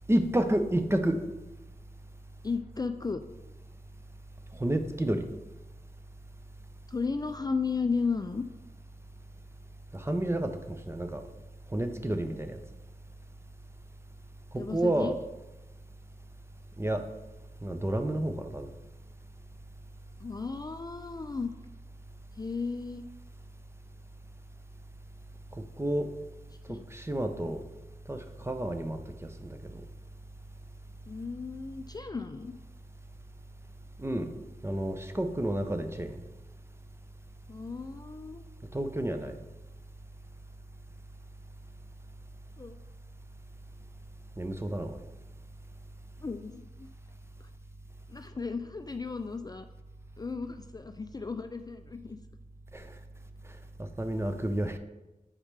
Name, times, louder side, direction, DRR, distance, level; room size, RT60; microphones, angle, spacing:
voice 1, 0.1-1.2 4.6-5.3 9.9-11.2 11.7-12.6 14.5-15.2 16.8-17.0 17.6-18.7 25.8-26.1 26.9-27.6 28.1-29.7 34.0-34.3 34.6-36.2 38.7-39.4 44.4-45.0 52.7-52.9 54.0-54.8, right 1 dB, 15° right, 7 dB, 0.6 m, -30 dB
voice 2, 2.4-3.2 6.9-8.4 14.6-15.1 20.2-21.5 22.4-23.1 26.7-26.9 31.1-32.5 37.5-38.4 42.6-42.8 46.2-46.9 48.1-49.7 50.2-52.2, left 4 dB, 25° left, 8 dB, 0.3 m, -34 dB
7.3 x 4.9 x 3.3 m, 1.0 s
cardioid pair, 50°, 15 cm